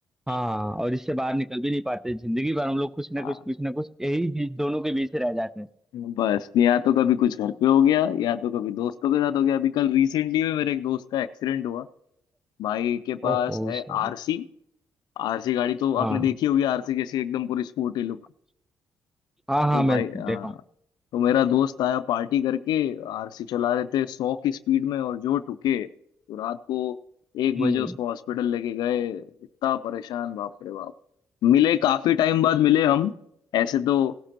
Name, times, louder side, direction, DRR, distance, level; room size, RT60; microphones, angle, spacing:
voice 1, 0.3-5.7 13.2-14.1 16.0-16.3 19.5-20.6 27.6-28.0, equal, 5° right, 18 dB, 0.5 m, -27 dB
voice 2, 5.9-11.9 12.6-14.5 15.2-18.2 19.7-20.5 21.1-25.9 26.3-27.0 27.3-29.2 29.6-30.9 31.4-33.1 33.5-34.2, left 11 dB, 70° left, 14 dB, 0.5 m, -24 dB
16.5 x 12.5 x 2.9 m, 0.78 s
hypercardioid pair, 50°, 7 cm